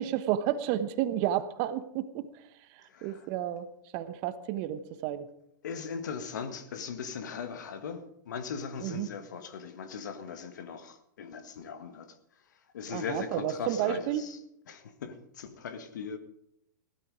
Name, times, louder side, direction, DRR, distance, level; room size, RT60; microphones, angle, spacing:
voice 1, 0.0-2.4 2.7-3.7 3.9-5.3 8.8-9.1 12.9-14.3, right 11 dB, 45° right, 13 dB, 1.0 m, -31 dB
voice 2, 2.9-3.3 5.6-12.2 12.7-14.4 14.7-16.2, left 6 dB, 70° left, 9 dB, 1.8 m, -39 dB
16.0 x 13.0 x 4.9 m, 0.76 s
hypercardioid pair, 110°, 10 cm